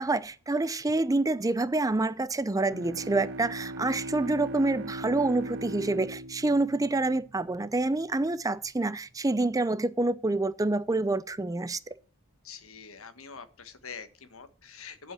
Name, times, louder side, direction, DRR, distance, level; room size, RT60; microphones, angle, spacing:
voice 1, 0.0-11.8, right 2 dB, 15° right, 0.5 m, -27 dB
Bowed string instrument, 2.6-7.7, right 2 dB, 60° right, 0.7 m, -39 dB
voice 2, 12.4-15.1, left 6 dB, 80° left, 1.3 m, -45 dB
8.1 x 7.5 x 7.5 m
head